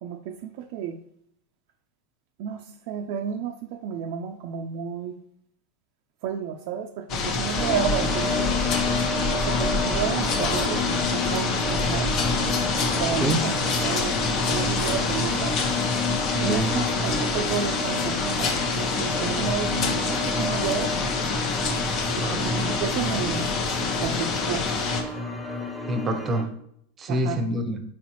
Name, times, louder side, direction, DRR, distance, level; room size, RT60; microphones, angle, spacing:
voice 1, 0.0-1.0 2.4-5.2 6.2-8.6 9.3-12.2 13.0-13.6 13.8-14.2 14.4-15.6 16.4-20.9 22.2-23.5 24.0-24.6 27.1-27.4, right 8 dB, 60° right, 4 dB, 0.4 m, -31 dB
sound 1, 7.1-25.0, left 4 dB, 45° left, 0.8 m, -27 dB
sound 2, 7.6-26.4, left 2 dB, 10° left, 1.1 m, -30 dB
voice 2, 16.3-16.7 22.2-22.5 25.9-26.5 27.0-27.8, right 1 dB, 25° right, 7 dB, 0.7 m, -26 dB
4.5 x 4.0 x 2.9 m, 0.70 s
hypercardioid pair, 105°, 0 cm